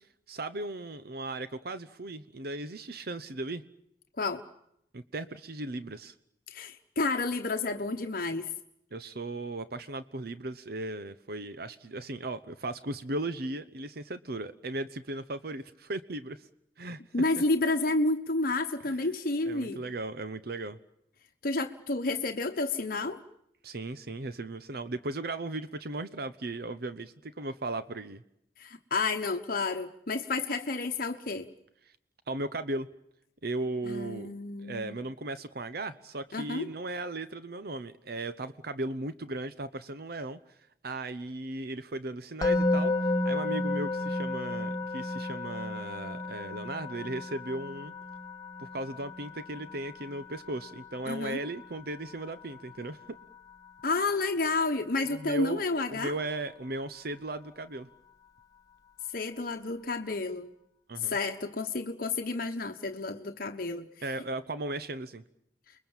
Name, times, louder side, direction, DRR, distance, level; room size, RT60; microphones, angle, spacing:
voice 1, 0.3-3.6 4.9-6.1 8.9-16.5 16.8-17.0 17.4-17.5 18.9-19.0 19.4-20.8 23.6-28.2 31.9-32.0 32.3-32.9 33.4-34.3 34.6-47.9 48.6-53.2 55.1-57.9 60.9-61.2 64.0-65.2, right 2 dB, 60° right, 12 dB, 0.9 m, -37 dB
voice 2, 6.5-8.5 17.1-19.8 21.4-23.2 28.6-31.5 33.8-35.0 36.3-36.7 51.1-51.4 53.8-56.1 59.1-60.5 61.0-63.9, left 3 dB, 55° left, 5 dB, 1.1 m, -30 dB
Musical instrument, 42.4-53.5, left 2 dB, 20° left, 1.6 m, -33 dB
30.0 x 22.0 x 7.3 m, 0.77 s
head